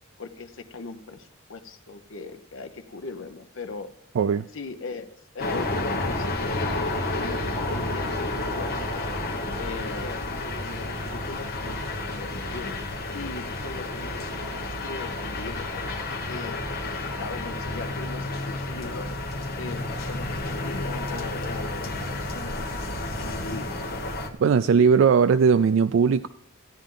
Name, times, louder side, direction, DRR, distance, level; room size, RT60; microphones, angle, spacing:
voice 1, 0.2-3.9 4.5-6.7 7.0-9.1 9.5-10.3 10.6-12.8 13.1-15.8 16.3-19.1 19.5-21.9 22.2-23.7, left 3 dB, 75° left, 0.8 m, -39 dB
sound 1, 5.4-24.3, left 2 dB, 50° left, 1.2 m, -31 dB
voice 2, 24.4-26.3, right 6 dB, 70° right, 0.3 m, -19 dB
15.5 x 9.0 x 3.8 m
head